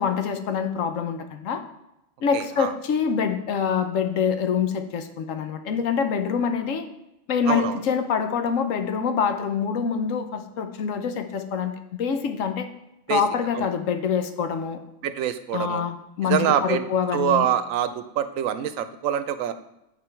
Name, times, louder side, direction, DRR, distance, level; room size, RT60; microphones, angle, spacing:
voice 1, 0.0-1.6 2.2-6.9 7.3-12.7 13.1-14.8 15.5-17.5, left 6 dB, 80° left, 8 dB, 1.1 m, -25 dB
voice 2, 2.3-2.7 7.5-7.8 13.1-13.2 13.6-13.7 15.0-15.8 16.2-16.8 17.1-19.5, right 9 dB, 85° right, 12 dB, 1.0 m, -25 dB
8.5 x 4.8 x 4.4 m, 0.89 s
omnidirectional pair, 1.3 m